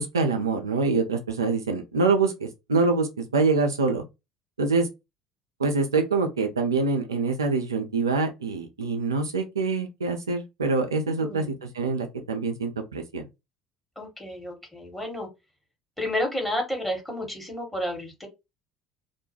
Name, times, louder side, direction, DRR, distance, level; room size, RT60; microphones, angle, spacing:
voice 1, 0.0-4.0 4.6-4.9 5.6-13.3, right 4 dB, 80° right, 0.4 m, -25 dB
voice 2, 11.2-11.6 14.0-15.3 16.0-18.3, left 1 dB, 5° left, 1.3 m, -31 dB
2.4 x 2.1 x 2.9 m
figure-of-eight pair, 60°, 2 cm